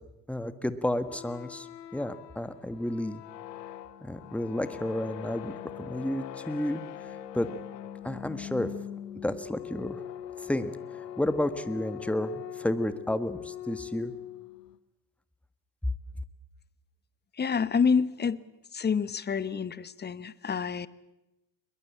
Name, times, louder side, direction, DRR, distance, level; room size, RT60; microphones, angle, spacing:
voice 1, 0.3-1.7 1.9-3.2 4.0-6.8 7.3-7.5 8.0-8.7 9.2-10.0 10.4-10.8 11.2-14.1, left 1 dB, 5° left, 12 dB, 1.6 m, -31 dB
sound 1, 1.0-14.8, left 11 dB, 80° left, 1.1 m, -42 dB
voice 2, 17.4-18.4 18.7-20.9, left 6 dB, 20° left, 18 dB, 1.0 m, -27 dB
22.0 x 21.5 x 8.6 m, 0.95 s
hypercardioid pair, 65°, 48 cm